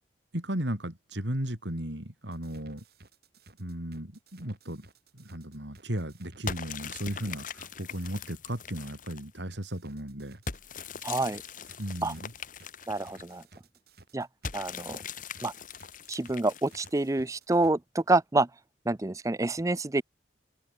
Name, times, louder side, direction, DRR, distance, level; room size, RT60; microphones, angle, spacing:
voice 1, 0.3-2.8 3.6-4.8 5.1-10.4 11.8-12.3, right 1 dB, 80° right, 4.7 m, -35 dB
sound 1, 2.3-8.1 9.5-17.7, right 2 dB, 60° right, 5.8 m, -56 dB
sound 2, 6.5-9.4 10.5-13.4 14.4-17.1, left 6 dB, 50° left, 1.5 m, -41 dB
voice 2, 11.0-11.4 12.0-12.1 12.9-13.4 14.1-14.3 14.5-15.0 15.4-15.5 16.1-18.5 18.9-20.0, right 2 dB, 20° right, 0.5 m, -27 dB
open air
head